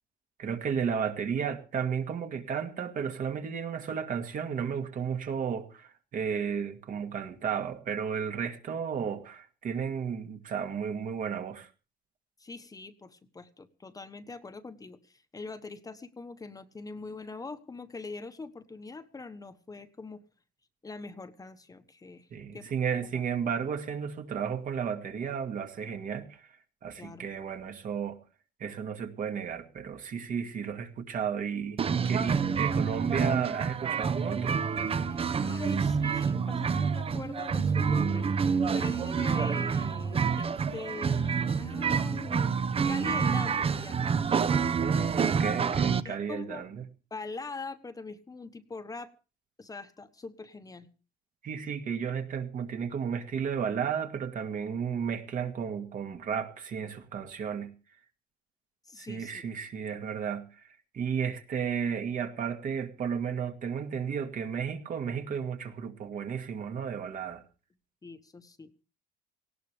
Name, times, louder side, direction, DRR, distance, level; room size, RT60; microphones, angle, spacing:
voice 1, 0.4-11.7 22.3-26.5 26.8-28.2 28.6-34.6 44.8-46.9 51.4-57.7 59.0-60.6 60.9-67.4, right 7 dB, 50° right, 2.2 m, -33 dB
voice 2, 12.4-20.2 20.8-22.3 22.5-22.7 27.0-27.3 35.1-38.3 38.7-42.5 42.9-44.1 46.0-46.7 47.1-49.1 49.6-50.9 58.9-59.4 68.0-68.7, left 3 dB, 20° left, 1.2 m, -42 dB
sound 1, 31.8-46.0, right 6 dB, 35° right, 0.9 m, -28 dB
18.5 x 17.0 x 3.4 m
cardioid pair, 110°, 17 cm